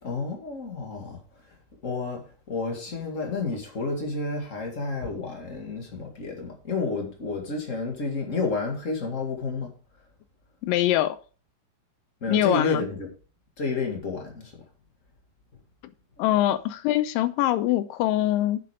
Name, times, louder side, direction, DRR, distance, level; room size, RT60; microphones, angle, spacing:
voice 1, 0.0-1.2 1.8-9.7 12.2-13.1 13.6-14.5, left 3 dB, 30° left, 1.5 m, -30 dB
voice 2, 10.6-11.2 12.3-12.9 16.2-18.6, left 13 dB, 80° left, 2.2 m, -23 dB
7.9 x 7.7 x 4.9 m
omnidirectional pair, 4.1 m